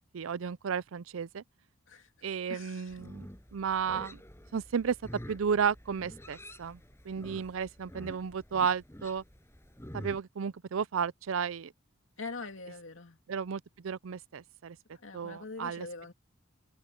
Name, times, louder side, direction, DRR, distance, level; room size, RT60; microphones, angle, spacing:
voice 1, 0.1-1.4 2.2-3.3 3.5-4.2 4.5-5.0 5.3-6.8 7.1-9.2 9.9-11.7 13.3-14.8 15.1-15.9, right 6 dB, 80° right, 0.5 m, -33 dB
voice 2, 2.5-3.0 12.2-13.2 14.9-16.1, left 3 dB, 70° left, 2.6 m, -43 dB
Livestock farm animals working animals, 2.9-10.2, equal, 15° left, 6.5 m, -48 dB
head